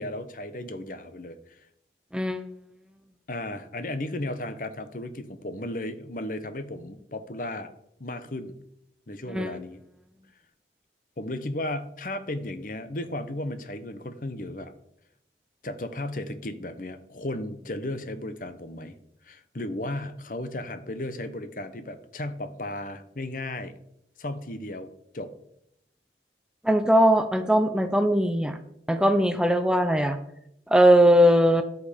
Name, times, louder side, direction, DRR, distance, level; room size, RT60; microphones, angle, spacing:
voice 1, 0.0-1.6 3.3-7.7 8.0-8.6 9.1-9.8 11.2-14.7 15.6-19.0 19.2-23.7 24.2-25.3, left 1 dB, 50° left, 11 dB, 0.9 m, -35 dB
voice 2, 2.1-2.4 9.3-9.5 26.6-28.6 28.9-30.2 30.7-31.6, equal, 5° right, 8 dB, 0.6 m, -20 dB
10.5 x 8.4 x 5.1 m, 0.77 s
head